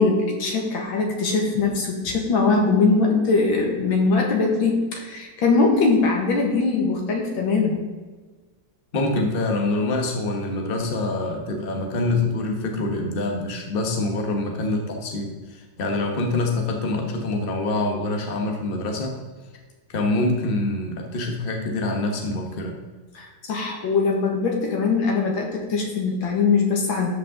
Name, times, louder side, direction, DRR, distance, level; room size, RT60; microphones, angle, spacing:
voice 1, 0.0-7.8 23.1-27.1, left 4 dB, 85° left, 1 dB, 2.4 m, -21 dB
voice 2, 8.9-19.2 19.9-22.8, left 2 dB, 35° left, 2 dB, 1.3 m, -25 dB
12.5 x 5.5 x 3.8 m, 1.4 s
omnidirectional pair, 2.1 m